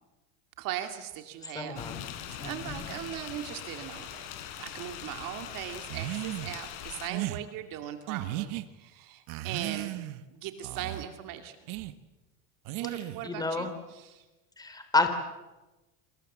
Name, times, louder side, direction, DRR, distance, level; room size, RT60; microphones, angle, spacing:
voice 1, 0.6-1.9 2.3-4.2 4.6-10.0 10.3-11.6 12.8-14.2, right 11 dB, 50° right, 7 dB, 2.4 m, -39 dB
voice 2, 1.4-2.0 2.4-2.9 13.2-13.7 14.6-15.1, left 3 dB, 10° left, 7 dB, 3.4 m, -30 dB
sound 1, 1.8-7.1, left 10 dB, 60° left, 4.9 m, -41 dB
sound 2, 5.9-6.5 7.1-7.4 8.1-8.6 9.3-10.2 10.6-11.1 11.7-11.9 12.7-13.3, right 16 dB, 65° right, 1.6 m, -35 dB
28.5 x 26.0 x 7.4 m, 1.1 s
supercardioid pair, 150°, 43 cm